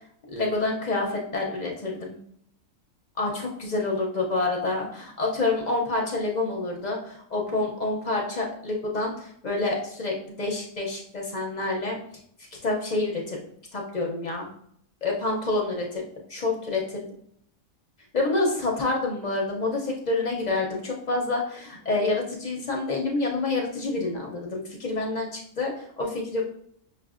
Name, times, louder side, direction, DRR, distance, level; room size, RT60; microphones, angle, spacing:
voice 1, 0.3-2.2 3.2-12.0 12.6-13.4 13.7-14.5 15.0-16.0 16.3-17.1 18.1-26.4, left 2 dB, 55° left, -1 dB, 0.5 m, -28 dB
5.7 x 2.5 x 2.4 m, 0.68 s
omnidirectional pair, 1.4 m